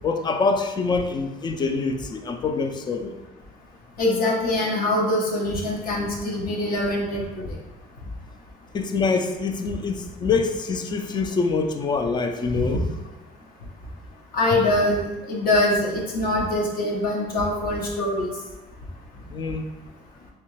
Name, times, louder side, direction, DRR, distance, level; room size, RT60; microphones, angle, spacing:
voice 1, 0.0-3.2 8.7-12.8 19.3-19.6, left 4 dB, 25° left, 6 dB, 0.4 m, -25 dB
voice 2, 4.0-7.5 14.3-15.0 15.3-18.3, left 1 dB, 60° left, -2 dB, 0.9 m, -23 dB
3.2 x 2.8 x 3.1 m, 1.1 s
cardioid pair, 110°, 17 cm